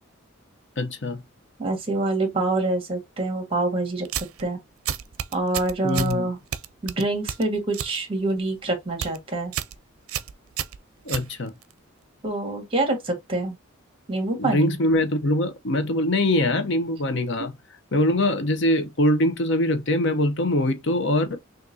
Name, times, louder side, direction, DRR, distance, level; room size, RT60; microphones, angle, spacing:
voice 1, 0.8-1.2 5.8-6.3 11.0-11.5 14.4-17.5 17.9-21.4, left 1 dB, 55° left, 0.8 m, -23 dB
voice 2, 1.6-4.1 4.4-4.6 5.3-6.4 6.8-9.5 12.2-13.6 14.1-14.8, right 2 dB, 25° right, 1.6 m, -26 dB
sound 1, 4.0-4.4 4.9-6.2 6.5-8.0 8.3-8.6 8.9-9.2 9.5-9.8 10.1-11.7, right 9 dB, 85° right, 0.5 m, -31 dB
6.1 x 2.6 x 2.7 m
head